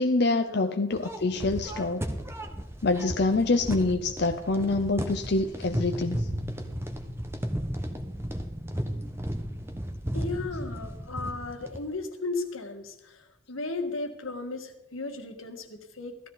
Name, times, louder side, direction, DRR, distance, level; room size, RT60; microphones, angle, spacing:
voice 1, 0.0-2.0 2.8-6.2, left 3 dB, 55° left, 6 dB, 0.6 m, -26 dB
sound 1, 0.9-11.9, equal, 10° right, 1.0 m, -34 dB
voice 2, 10.1-16.2, left 3 dB, 85° left, 5 dB, 1.8 m, -35 dB
15.5 x 13.5 x 4.0 m, 0.94 s
head